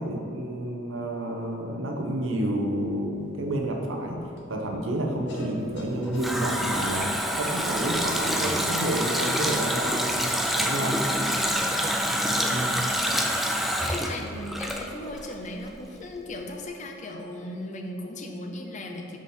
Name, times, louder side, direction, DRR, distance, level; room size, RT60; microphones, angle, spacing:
voice 1, 0.0-4.2 4.5-11.0 12.5-12.7, right 1 dB, 80° right, 1 dB, 0.8 m, -30 dB
sound 1, 2.8-8.6, equal, 60° left, 0.9 m, -43 dB
Water tap faucet, 5.7-15.3 15.6-15.7, equal, ahead, 0.3 m, -27 dB
voice 2, 12.3-13.1 13.8-19.2, left 1 dB, 40° left, 2 dB, 0.6 m, -37 dB
4.9 x 4.2 x 5.5 m, 2.6 s
head